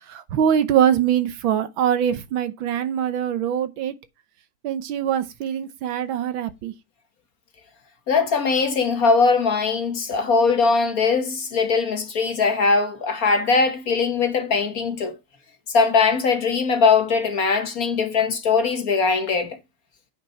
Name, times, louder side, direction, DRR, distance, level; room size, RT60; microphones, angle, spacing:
voice 1, 0.1-3.9 4.6-6.7, right 9 dB, 75° right, 1.6 m, -23 dB
voice 2, 8.1-15.1 15.7-19.6, left 4 dB, 50° left, 1.4 m, -20 dB
9.3 x 5.7 x 4.4 m
omnidirectional pair, 2.2 m